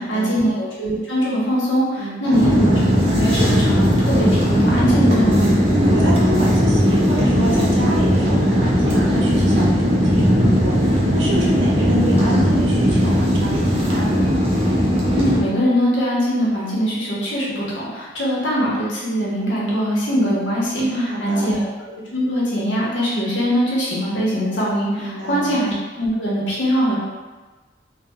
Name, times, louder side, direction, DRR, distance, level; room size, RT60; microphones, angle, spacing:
voice 1, 0.0-2.8 3.1-5.5 15.1-27.0, equal, 80° left, -7 dB, 0.9 m, -21 dB
voice 2, 2.0-2.4 5.7-14.4 20.8-21.5 25.0-25.5, right 1 dB, 85° right, -4 dB, 0.6 m, -26 dB
sound 1, 2.3-15.4, equal, 30° right, 0.5 m, -17 dB
3.2 x 2.2 x 2.3 m, 1.3 s
head